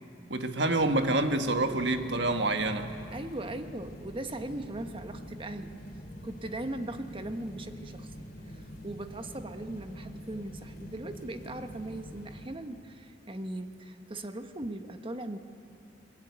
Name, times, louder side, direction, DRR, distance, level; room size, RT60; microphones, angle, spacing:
voice 1, 0.3-2.9, right 2 dB, 70° right, 6 dB, 1.6 m, -27 dB
sound 1, 0.7-12.5, equal, 50° left, 3.2 m, -45 dB
voice 2, 3.1-5.8 6.2-15.4, right 1 dB, 30° right, 7 dB, 1.2 m, -39 dB
22.0 x 20.5 x 9.6 m, 2.4 s
head